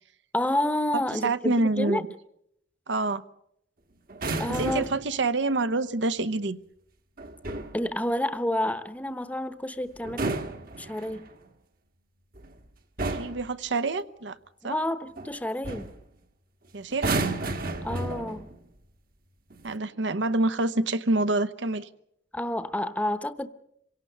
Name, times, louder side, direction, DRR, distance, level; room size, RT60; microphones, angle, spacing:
voice 1, 0.3-2.0 4.4-4.9 7.7-10.4 10.8-11.3 14.6-15.9 17.8-18.5 22.3-23.5, left 1 dB, 10° left, 0.9 m, -29 dB
voice 2, 0.9-2.1 2.9-3.2 4.5-6.6 13.0-14.4 14.6-14.8 16.7-17.1 19.6-21.9, right 2 dB, 75° right, 0.9 m, -27 dB
sound 1, 4.1-5.1 7.2-7.8 10.0-11.3 12.4-12.6 13.0-13.5 15.2-15.3 15.6-16.0 16.9-18.6 19.5-19.8, right 2 dB, 50° right, 1.5 m, -32 dB
27.0 x 17.5 x 6.7 m
head